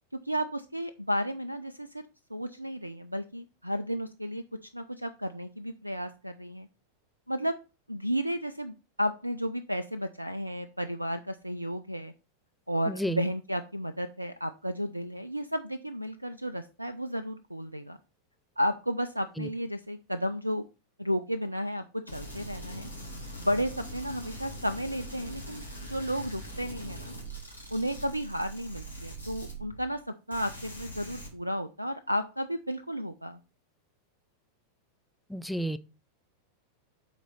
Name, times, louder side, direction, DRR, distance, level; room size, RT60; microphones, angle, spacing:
voice 1, 0.2-2.0 2.3-4.4 4.7-6.7 7.3-7.6 7.9-12.1 12.7-18.0 18.6-20.7 21.0-21.8 22.1-22.9 23.4-27.1 27.7-33.4, equal, 85° right, 0.3 m, -33 dB
sound 1, 22.1-30.0 30.3-31.3, right 1 dB, 85° left, 2.1 m, -42 dB
voice 2, 35.3-35.8, equal, 5° left, 0.4 m, -30 dB
6.0 x 4.0 x 5.7 m
figure-of-eight pair, 90°, 0 cm